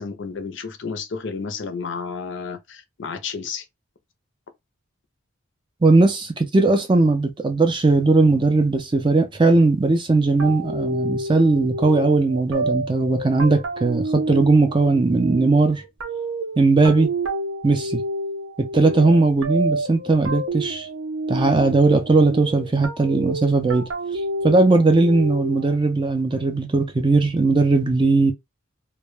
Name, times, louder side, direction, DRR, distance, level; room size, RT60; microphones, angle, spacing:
voice 1, 0.0-3.6, left 5 dB, 60° left, 0.5 m, -31 dB
voice 2, 5.8-15.8 16.6-17.1 17.6-18.0 18.6-20.9 21.3-23.9 24.4-28.3, right 3 dB, 20° right, 0.4 m, -18 dB
sound 1, 10.4-25.8, right 2 dB, 75° right, 0.6 m, -29 dB
2.1 x 2.1 x 3.0 m
head